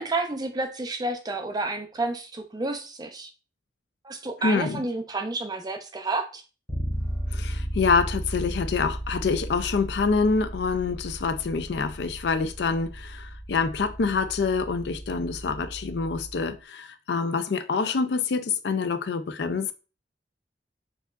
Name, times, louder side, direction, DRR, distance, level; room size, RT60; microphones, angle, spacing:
voice 1, 0.0-3.3 4.0-6.4, right 2 dB, 25° right, 0.5 m, -30 dB
voice 2, 4.4-4.8 7.3-19.7, left 4 dB, 70° left, 0.4 m, -26 dB
Bass guitar, 6.7-16.5, right 1 dB, 15° left, 0.7 m, -35 dB
4.4 x 2.7 x 2.4 m
head